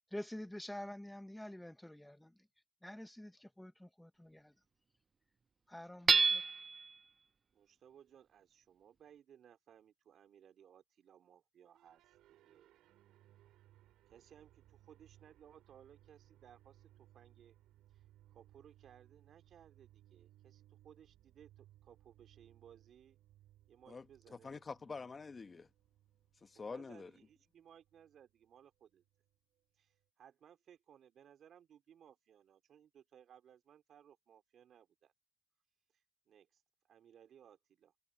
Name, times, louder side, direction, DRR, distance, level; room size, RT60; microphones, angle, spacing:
voice 1, 0.1-2.4 2.8-4.5 5.7-6.4, left 1 dB, 5° left, 0.8 m, -48 dB
Hammer / Chink clink, 6.1-6.9, right 5 dB, 35° right, 0.4 m, -28 dB
voice 2, 7.5-12.0 12.3-12.7 14.1-17.6 17.9-18.0 18.3-23.2 23.7-24.6 26.5-29.0 29.8-35.1 36.3-36.6 36.9-37.9, right 9 dB, 65° right, 4.0 m, -62 dB
sound 1, 11.7-30.0, right 14 dB, 90° right, 5.5 m, -66 dB
voice 3, 24.4-25.7 26.4-27.1, left 4 dB, 35° left, 1.1 m, -46 dB
cardioid pair, 90°, 0 cm